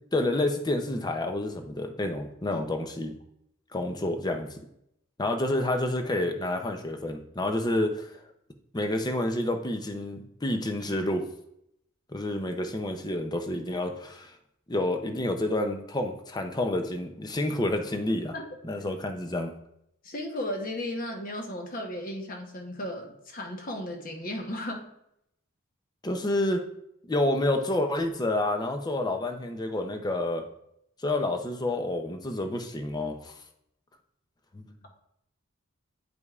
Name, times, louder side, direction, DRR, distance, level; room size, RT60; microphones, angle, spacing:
voice 1, 0.1-3.1 3.7-4.6 5.2-8.2 8.7-11.2 12.1-14.3 14.7-18.3 18.6-19.5 26.0-26.6 27.1-30.4 31.0-33.4 34.5-34.7, left 1 dB, 20° left, 5 dB, 0.5 m, -29 dB
voice 2, 20.0-24.8, left 1 dB, 40° left, 2 dB, 0.9 m, -35 dB
9.3 x 5.1 x 2.4 m, 0.77 s
head